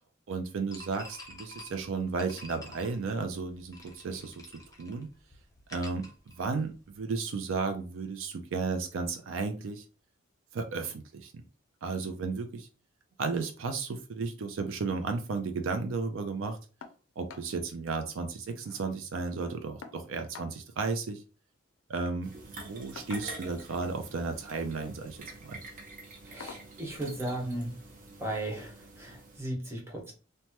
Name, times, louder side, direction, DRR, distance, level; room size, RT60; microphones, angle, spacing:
voice 1, 0.3-5.1 5.7-9.8 10.5-11.4 11.8-12.7 13.2-16.6 17.2-21.2 21.9-25.6, right 4 dB, 70° right, 6 dB, 0.4 m, -34 dB
sound 1, 0.7-7.0, left 1 dB, 15° left, 0.6 m, -50 dB
sound 2, 16.8-17.0 17.3-17.5 17.9-18.0 18.3-18.9 19.8-20.6 21.8-22.0 23.0-23.6 24.7-25.0 25.4-25.6 26.4-26.7 28.0-28.1 28.6-28.7, left 5 dB, 75° left, 0.4 m, -48 dB
sound 3, 22.2-29.4, right 2 dB, 40° right, 0.7 m, -47 dB
voice 2, 26.2-27.8 28.2-30.1, right 1 dB, 15° right, -2 dB, 1.0 m, -36 dB
3.2 x 2.1 x 2.8 m, 0.35 s
head